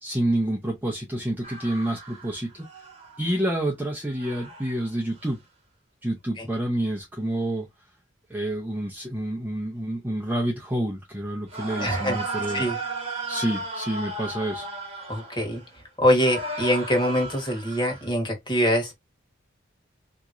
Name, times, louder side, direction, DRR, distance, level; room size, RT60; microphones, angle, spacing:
voice 1, 0.0-2.7 3.2-5.4 6.0-7.7 8.3-12.7 13.3-14.7, right 1 dB, 10° right, 0.6 m, -28 dB
sound 1, 1.4-3.4 4.2-4.9 5.2-5.3 11.5-15.8 16.2-18.1, right 2 dB, 30° right, 1.1 m, -35 dB
voice 2, 11.8-12.2 12.5-12.8 15.1-15.6 16.0-19.0, equal, 25° left, 1.3 m, -24 dB
3.6 x 2.9 x 2.5 m
head